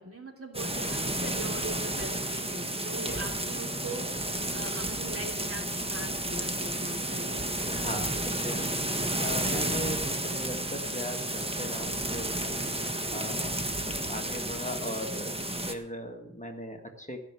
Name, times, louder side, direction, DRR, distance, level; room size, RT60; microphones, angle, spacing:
voice 1, 0.0-7.5, right 2 dB, 50° right, 0 dB, 3.0 m, -41 dB
sound 1, 0.5-15.7, right 1 dB, 20° right, 1.2 m, -32 dB
voice 2, 7.7-15.4 15.7-17.2, left 1 dB, 25° left, 4 dB, 1.6 m, -39 dB
15.0 x 5.9 x 8.9 m, 0.80 s
wide cardioid pair, 65°, 29 cm